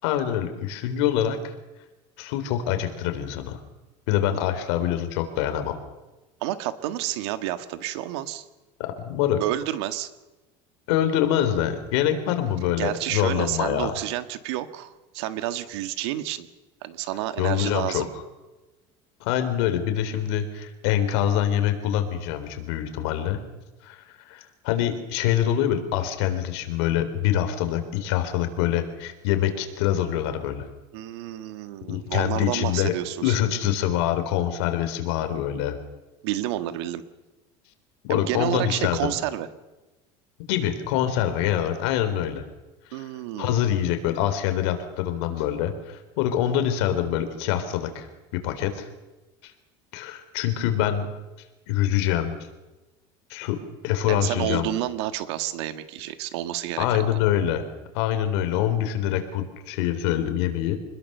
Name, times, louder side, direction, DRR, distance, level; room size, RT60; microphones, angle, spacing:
voice 1, 0.0-1.5 2.2-3.6 4.1-5.8 8.8-9.4 10.9-14.0 17.4-18.1 19.2-23.4 23.8-30.6 31.9-32.9 33.2-35.8 38.0-39.1 40.5-42.4 42.9-43.1 43.4-48.1 48.3-48.9 49.4-49.5 49.9-51.1 51.7-52.3 53.3-54.7 56.8-57.6 57.9-60.8, left 11 dB, 80° left, 8 dB, 3.6 m, -25 dB
voice 2, 6.4-8.4 9.4-10.1 12.8-16.5 16.8-18.1 30.9-33.4 36.2-37.0 38.1-39.5 42.9-43.6 54.1-57.1, right 13 dB, 90° right, 10 dB, 1.8 m, -30 dB
26.0 x 21.0 x 6.8 m, 1.1 s
cardioid pair, 155°, 14 cm